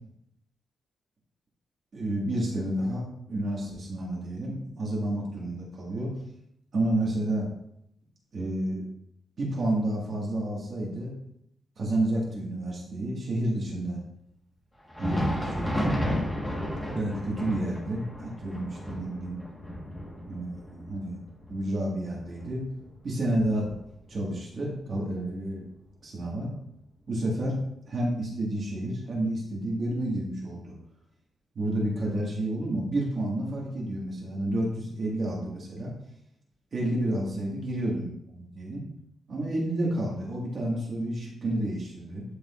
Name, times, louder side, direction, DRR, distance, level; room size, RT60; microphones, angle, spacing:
voice 1, 1.9-6.1 6.7-7.5 8.3-8.9 9.4-11.1 11.8-14.0 15.0-16.0 16.9-19.4 20.3-21.2 21.5-22.6 23.0-23.7 24.1-25.6 26.0-26.5 27.1-27.6 27.9-30.7 31.6-35.9 36.7-38.8 39.3-42.2, right 1 dB, 40° right, -3 dB, 1.7 m, -30 dB
Thunder, 14.8-24.2 24.6-24.8 25.4-25.6 26.6-26.7, equal, 10° left, 1.4 m, -34 dB
11.5 x 5.1 x 2.5 m, 0.74 s
wide cardioid pair, 175°, 0 cm